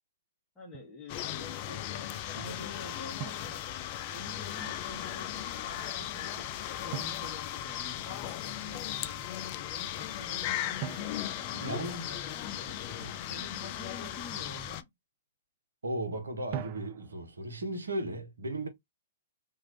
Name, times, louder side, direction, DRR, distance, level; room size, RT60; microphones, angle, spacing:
voice 1, 0.5-12.8 13.2-14.9, left 2 dB, 10° left, 1.4 m, -48 dB
Drum, 0.7-1.0 3.2-4.3 6.9-8.3 10.8-12.5 16.5-17.5, right 10 dB, 40° right, 0.3 m, -43 dB
sound 1, 1.1-14.8, left 12 dB, 40° left, 0.4 m, -37 dB
voice 2, 11.5-12.1 12.9-13.1 15.8-18.7, right 1 dB, 75° right, 1.1 m, -36 dB
2.9 x 2.7 x 2.8 m
figure-of-eight pair, 115°, 0 cm